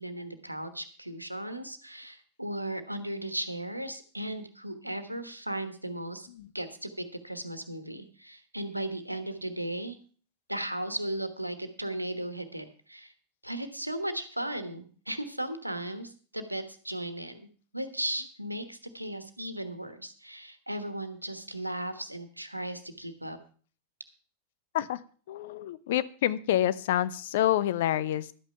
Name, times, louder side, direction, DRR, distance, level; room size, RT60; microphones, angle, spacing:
voice 1, 0.0-6.3 6.5-10.0 10.5-13.1 13.4-17.4 17.7-23.4, right 1 dB, 90° right, 9 dB, 1.3 m, -36 dB
voice 2, 25.3-28.3, left 12 dB, 55° left, 15 dB, 0.7 m, -27 dB
12.0 x 9.0 x 5.7 m, 0.41 s
figure-of-eight pair, 90°, 0 cm